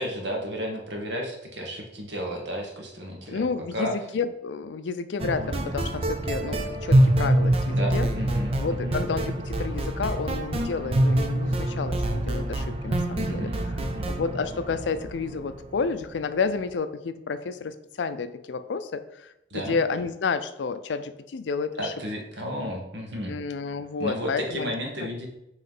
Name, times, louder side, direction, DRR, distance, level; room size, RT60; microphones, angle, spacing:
voice 1, 0.0-3.4 3.7-3.9 7.7-9.0 13.2-14.1 19.5-19.8 21.8-23.4 24.0-25.3, equal, 90° right, 1 dB, 1.3 m, -33 dB
voice 2, 3.3-8.1 8.6-13.5 14.1-21.9 23.3-24.7 25.0-25.1, left 5 dB, 90° left, 12 dB, 0.4 m, -30 dB
sound 1, 5.2-16.1, right 1 dB, 35° right, 0.6 m, -25 dB
5.7 x 3.1 x 5.4 m, 0.88 s
head